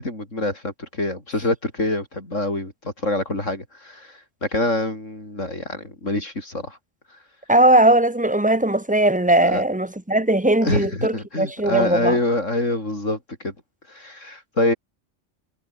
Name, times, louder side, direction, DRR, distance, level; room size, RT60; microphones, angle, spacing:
voice 1, 0.0-4.1 4.4-6.8 9.4-9.6 10.6-13.2 13.4-13.5 13.9-14.7, left 2 dB, 85° left, 7.0 m, -25 dB
voice 2, 7.5-12.2, right 1 dB, 5° right, 1.6 m, -19 dB
omnidirectional pair, 1.3 m